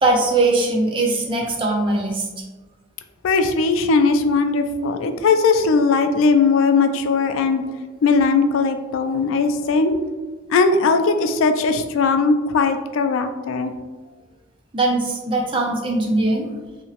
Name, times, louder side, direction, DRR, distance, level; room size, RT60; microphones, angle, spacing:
voice 1, 0.0-2.4 14.7-16.5, right 2 dB, 25° right, 0 dB, 0.4 m, -20 dB
voice 2, 3.2-7.6 8.0-9.9 10.5-13.7, left 4 dB, 75° left, 8 dB, 0.3 m, -18 dB
2.8 x 2.8 x 2.9 m, 1.3 s
head